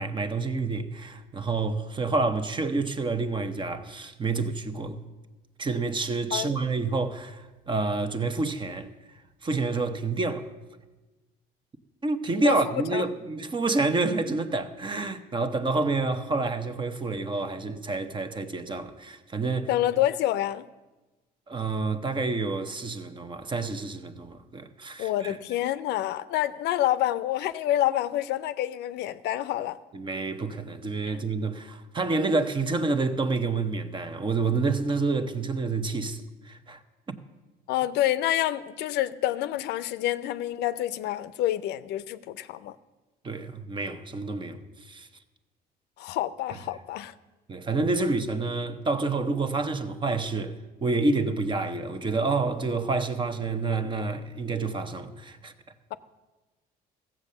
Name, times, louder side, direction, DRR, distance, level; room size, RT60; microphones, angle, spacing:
voice 1, 0.0-5.0 5.6-8.9 9.4-10.5 12.0-19.7 21.5-25.4 29.9-36.8 43.2-45.1 47.5-50.5 50.8-55.5, right 3 dB, 30° right, 0.9 m, -28 dB
voice 2, 19.7-20.7 25.0-29.8 31.1-31.2 37.7-42.8 46.0-47.1, left 13 dB, 80° left, 0.6 m, -27 dB
15.0 x 7.5 x 6.7 m
cardioid pair, 110°, 17 cm